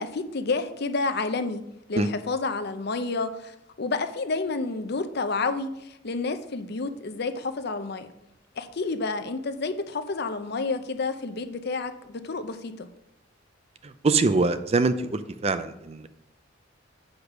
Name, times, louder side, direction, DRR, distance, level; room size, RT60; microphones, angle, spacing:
voice 1, 0.0-1.6 1.9-8.1 8.6-12.9, left 3 dB, 55° left, 9 dB, 0.7 m, -30 dB
voice 2, 13.8-16.1, right 3 dB, 35° right, 11 dB, 0.5 m, -24 dB
8.1 x 5.1 x 6.0 m, 0.84 s
head